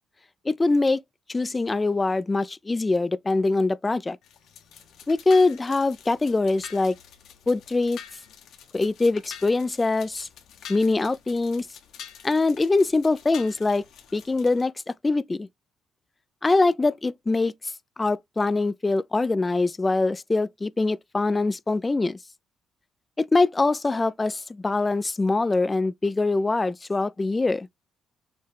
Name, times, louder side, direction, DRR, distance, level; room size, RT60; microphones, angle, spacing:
voice 1, 0.5-1.0 1.3-4.2 5.1-7.0 7.5-8.0 8.7-10.3 10.7-11.7 12.2-13.8 14.1-15.5 16.4-17.5 18.0-22.2 23.2-27.7, left 3 dB, 20° left, 0.4 m, -23 dB
sound 1, 4.2-14.6, left 8 dB, 75° left, 1.5 m, -46 dB
6.5 x 2.2 x 3.4 m
cardioid pair, 100°, 0 cm